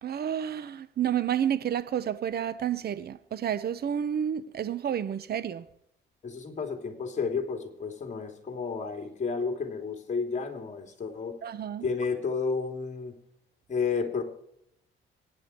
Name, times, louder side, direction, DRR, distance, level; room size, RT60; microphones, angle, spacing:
voice 1, 0.0-5.7 11.4-11.9, right 9 dB, 50° right, 0.9 m, -30 dB
voice 2, 6.2-11.4 11.8-13.1 13.7-14.2, left 5 dB, 35° left, 3.2 m, -31 dB
24.0 x 9.8 x 4.6 m
cardioid pair, 90°, 20 cm